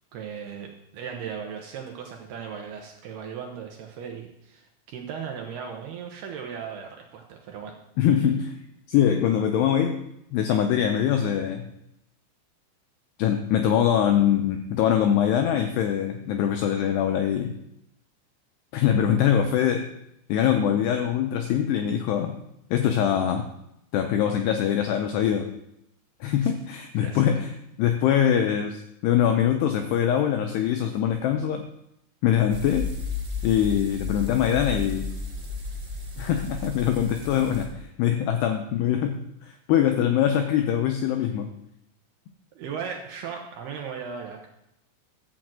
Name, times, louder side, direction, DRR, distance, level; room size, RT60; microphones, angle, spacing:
voice 1, 0.1-7.7 26.4-26.6 27.0-27.3 42.6-44.5, right 7 dB, 75° right, 2 dB, 2.4 m, -37 dB
voice 2, 8.0-8.5 8.9-10.0 10.3-11.7 13.2-17.5 18.7-19.9 20.3-22.3 22.7-23.5 23.9-25.5 26.2-27.5 27.8-31.7 32.2-32.9 33.4-35.1 36.2-41.5, left 9 dB, 90° left, 5 dB, 2.4 m, -23 dB
sound 1, 32.5-37.7, left 4 dB, 30° right, 0.9 m, -33 dB
13.5 x 6.0 x 7.6 m, 0.81 s
omnidirectional pair, 5.8 m